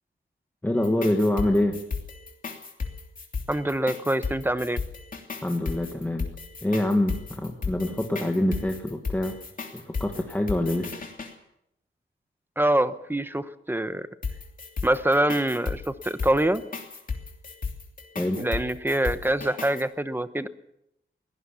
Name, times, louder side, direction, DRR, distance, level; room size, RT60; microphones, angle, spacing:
voice 1, 0.6-1.8 5.4-6.3 6.6-9.4 9.7-11.0 18.2-18.4, left 1 dB, 10° left, 2 dB, 1.7 m, -25 dB
sound 1, 0.8-11.3 14.2-19.8, left 4 dB, 40° left, 2.9 m, -34 dB
voice 2, 3.5-4.8 12.6-14.1 14.8-16.6 18.3-20.5, right 1 dB, 10° right, 12 dB, 0.8 m, -25 dB
22.0 x 17.5 x 7.1 m, 0.80 s
wide cardioid pair, 180°, 21 cm